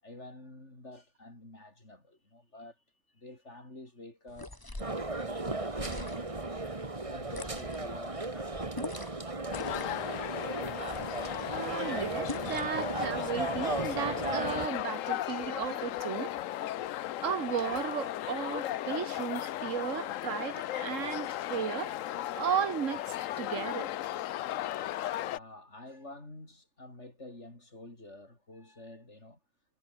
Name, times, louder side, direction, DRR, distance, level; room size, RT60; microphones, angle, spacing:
voice 1, 0.0-4.6 4.8-6.6 7.0-8.9 25.2-29.4, left 2 dB, 60° left, 6.2 m, -50 dB
sound 1, 4.3-5.0 5.7-6.4 7.3-7.9 8.7-9.2 9.5-10.1 10.9-11.4 12.3-12.8, left 2 dB, 15° left, 1.9 m, -43 dB
sound 2, 4.8-14.7, right 2 dB, 25° right, 2.0 m, -36 dB
sound 3, 9.5-25.4, left 13 dB, 90° left, 1.0 m, -36 dB
voice 2, 11.5-16.3 17.2-21.9 22.3-23.1 23.4-23.9, right 8 dB, 80° right, 1.5 m, -34 dB
omnidirectional pair, 1.3 m